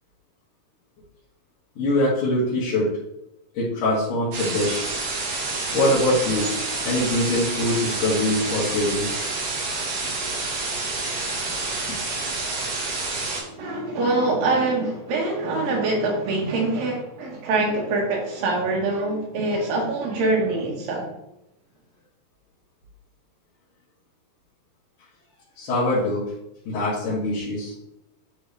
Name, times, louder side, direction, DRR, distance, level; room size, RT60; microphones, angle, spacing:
voice 1, 1.8-2.9 3.5-4.8 5.7-6.5 6.8-9.2 25.6-26.3 26.6-27.7, left 1 dB, 75° left, -11 dB, 3.4 m, -23 dB
sound 1, 4.3-13.4, right 3 dB, 55° right, 2.3 m, -28 dB
voice 2, 13.4-21.1, right 2 dB, 85° right, -1 dB, 3.1 m, -24 dB
9.0 x 3.7 x 3.3 m, 0.85 s
omnidirectional pair, 3.9 m